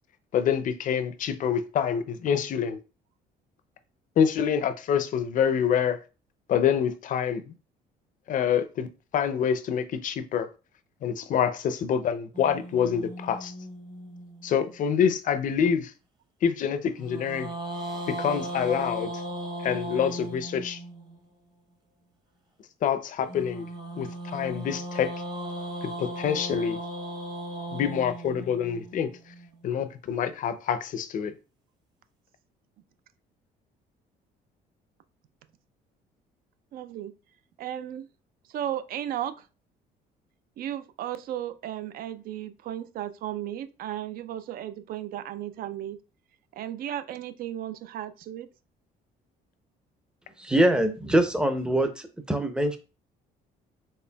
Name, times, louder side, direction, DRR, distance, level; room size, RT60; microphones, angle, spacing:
voice 1, 0.3-2.8 4.2-6.0 6.5-7.5 8.3-10.5 11.0-13.5 14.4-15.9 16.4-17.5 18.1-19.1 19.6-20.8 22.8-23.7 24.0-25.1 25.8-26.8 27.7-29.1 29.6-31.3, left 8 dB, 50° left, 0.5 m, -26 dB
sound 1, 12.3-14.7 17.0-21.2 23.3-29.5, right 1 dB, 25° right, 0.9 m, -37 dB
voice 2, 36.7-37.1 37.6-38.1 38.5-39.5 40.6-46.0 46.5-48.5, right 11 dB, 60° right, 0.4 m, -35 dB
voice 3, 50.4-52.8, right 1 dB, 5° right, 0.5 m, -24 dB
4.3 x 3.2 x 2.2 m
cardioid pair, 110°, 17 cm